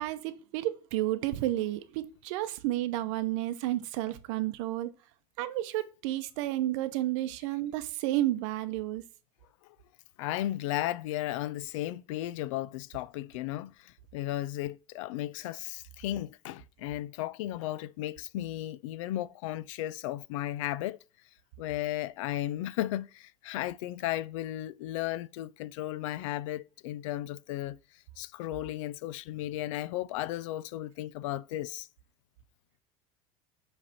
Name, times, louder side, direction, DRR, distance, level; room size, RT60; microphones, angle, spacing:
voice 1, 0.0-4.9 5.4-9.0, right 15 dB, 75° right, 0.7 m, -31 dB
voice 2, 10.2-21.0 21.6-27.8 28.2-31.9, left 14 dB, 85° left, 0.4 m, -35 dB
7.6 x 3.3 x 4.1 m
supercardioid pair, 135°, 16 cm